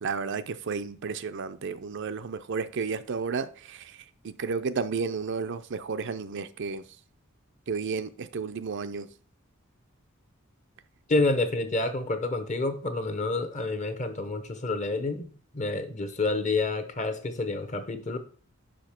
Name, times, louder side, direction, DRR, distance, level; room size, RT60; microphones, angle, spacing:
voice 1, 0.0-6.8 7.7-9.1, right 5 dB, 60° right, 0.5 m, -32 dB
voice 2, 11.1-18.2, left 2 dB, 35° left, 0.9 m, -28 dB
5.6 x 5.1 x 5.8 m
head